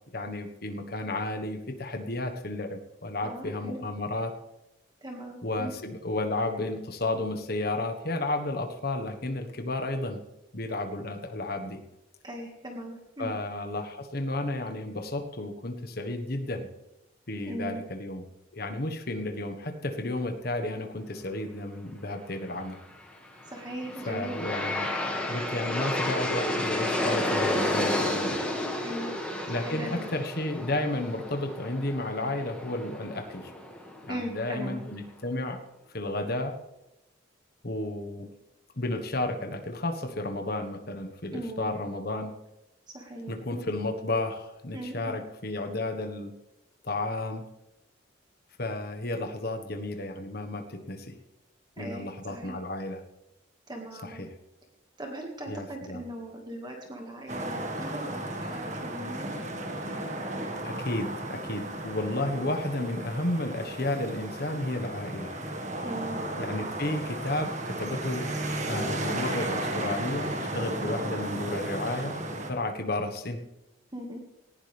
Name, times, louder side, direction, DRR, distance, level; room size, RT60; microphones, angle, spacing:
voice 1, 0.1-4.3 5.4-10.2 10.5-11.8 13.2-16.7 17.3-18.2 18.5-22.8 24.1-24.9 25.3-28.4 29.5-33.5 34.0-35.6 35.9-36.6 37.6-38.3 38.8-42.3 43.3-46.3 46.8-47.5 48.6-51.2 51.8-53.0 54.0-54.3 55.5-56.0 60.6-65.3 66.4-68.3 68.7-72.2 72.5-73.4, left 2 dB, 50° left, 6 dB, 1.4 m, -32 dB
voice 2, 3.2-3.8 5.0-5.7 12.2-13.3 17.4-17.8 23.5-24.4 28.8-29.2 29.5-30.1 34.1-34.8 41.3-41.7 42.9-43.7 44.7-45.1 51.8-52.6 53.7-54.2 55.0-59.3 65.8-66.2 73.9-74.2, right 1 dB, 20° right, 1 dB, 1.9 m, -39 dB
Aircraft, 23.4-34.4, left 1 dB, 5° left, 2.0 m, -31 dB
sound 1, 57.3-72.5, right 1 dB, 35° right, 1.8 m, -34 dB
19.0 x 15.0 x 3.5 m, 0.93 s
head